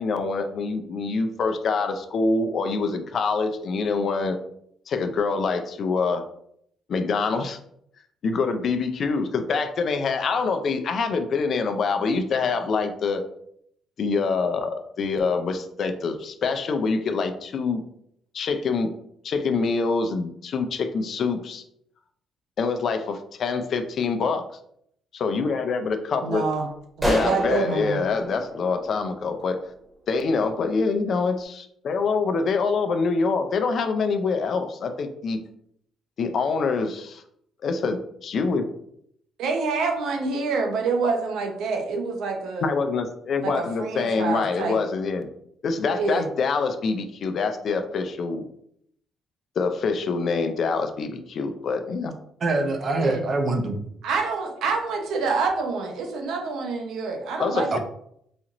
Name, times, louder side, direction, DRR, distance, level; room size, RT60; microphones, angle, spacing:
voice 1, 0.0-4.4 4.9-6.2 6.9-7.6 8.2-13.2 14.0-17.8 18.3-18.9 19.2-21.6 22.6-24.4 25.1-26.4 27.0-29.6 30.1-35.4 36.2-37.2 37.6-38.7 42.6-45.3 45.6-48.5 49.6-52.1 57.4-57.8, left 4 dB, 60° left, 7 dB, 0.4 m, -25 dB
voice 2, 26.2-26.7 27.0-28.0 39.4-42.7 43.4-44.8 45.9-46.3 53.0-53.2 54.0-57.8, right 4 dB, 85° right, 3 dB, 0.7 m, -27 dB
sound 1, 27.0-29.6, equal, 20° right, 1.2 m, -29 dB
voice 3, 52.4-53.8 57.7-57.8, right 2 dB, 50° right, 5 dB, 0.6 m, -24 dB
4.1 x 2.5 x 2.9 m, 0.70 s
cardioid pair, 90°, 0 cm